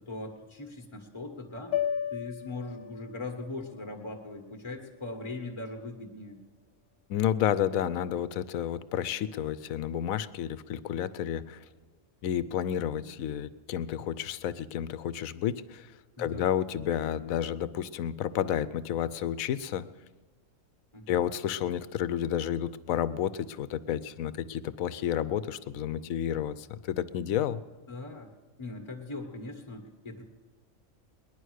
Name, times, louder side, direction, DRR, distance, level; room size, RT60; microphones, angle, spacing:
voice 1, 0.1-1.9 2.1-6.4 16.2-16.5 20.9-21.2 27.9-28.3 28.6-30.2, left 2 dB, 20° left, 1 dB, 1.5 m, -40 dB
sound 1, 1.7-6.0, left 9 dB, 55° left, 0.9 m, -37 dB
voice 2, 7.1-11.6 12.2-15.9 16.2-19.8 21.1-27.6, left 10 dB, 80° left, 16 dB, 1.1 m, -31 dB
20.0 x 11.0 x 6.4 m, 1.2 s
omnidirectional pair, 1.4 m